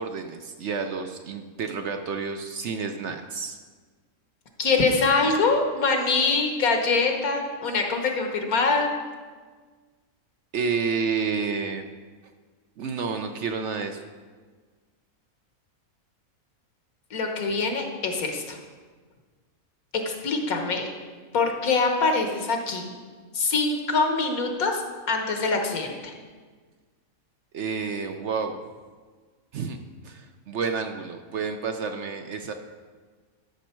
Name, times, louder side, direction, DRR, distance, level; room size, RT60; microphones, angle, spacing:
voice 1, 0.0-3.6 10.5-11.8 12.8-14.0 27.5-28.6 29.5-29.8 30.0-32.5, right 5 dB, 60° right, 6 dB, 0.8 m, -30 dB
voice 2, 4.6-8.9 17.1-18.6 19.9-20.9 21.3-22.9 23.3-24.8 25.1-26.1, left 4 dB, 75° left, 3 dB, 1.6 m, -24 dB
13.0 x 6.2 x 4.4 m, 1.5 s
omnidirectional pair, 1.5 m